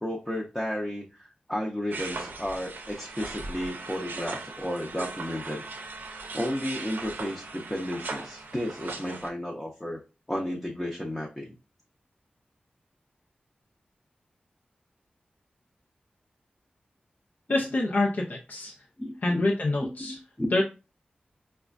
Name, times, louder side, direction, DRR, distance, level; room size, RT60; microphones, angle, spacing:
voice 1, 0.0-5.7 6.3-10.0 10.3-11.5 19.0-19.5 19.8-20.6, left 1 dB, 15° left, -2 dB, 0.6 m, -33 dB
sound 1, 1.9-9.3, right 3 dB, 85° right, 0.5 m, -38 dB
voice 2, 17.5-18.7 19.2-20.1 20.5-20.6, left 2 dB, 65° left, -2 dB, 0.6 m, -26 dB
4.8 x 2.2 x 2.4 m, 0.30 s
wide cardioid pair, 85°, 3 cm